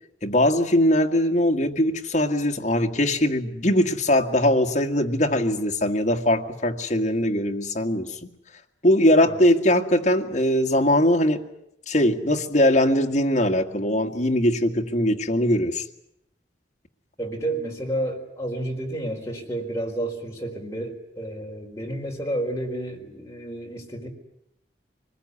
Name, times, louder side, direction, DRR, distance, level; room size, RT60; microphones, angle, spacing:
voice 1, 0.2-8.2 8.8-11.4 11.9-15.8, left 1 dB, 40° left, 2 dB, 1.9 m, -21 dB
voice 2, 17.2-24.1, right 1 dB, 15° left, 0 dB, 4.3 m, -31 dB
25.0 x 20.5 x 9.8 m, 0.81 s
head